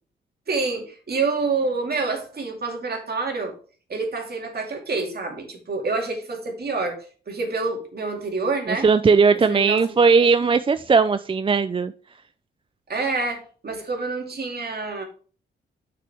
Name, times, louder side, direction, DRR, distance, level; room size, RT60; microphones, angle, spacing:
voice 1, 0.5-3.5 3.9-8.9 9.5-10.3 12.9-15.0, right 3 dB, 50° right, 2.3 m, -27 dB
voice 2, 8.7-11.9, right 5 dB, 25° right, 0.4 m, -18 dB
6.8 x 5.9 x 3.4 m
supercardioid pair, 55°, 20 cm